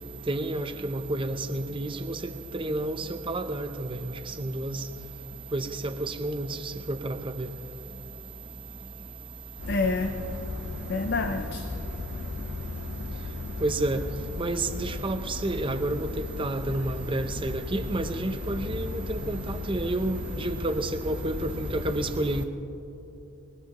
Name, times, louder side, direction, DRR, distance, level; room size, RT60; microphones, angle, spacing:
voice 1, 0.2-4.9 5.5-7.5 8.8-8.9 13.6-22.4, right 2 dB, 25° right, 9 dB, 0.6 m, -30 dB
voice 2, 9.6-13.6 14.3-20.7 21.2-22.4, left 3 dB, 50° left, 5 dB, 0.6 m, -33 dB
21.5 x 20.0 x 3.0 m, 2.9 s
head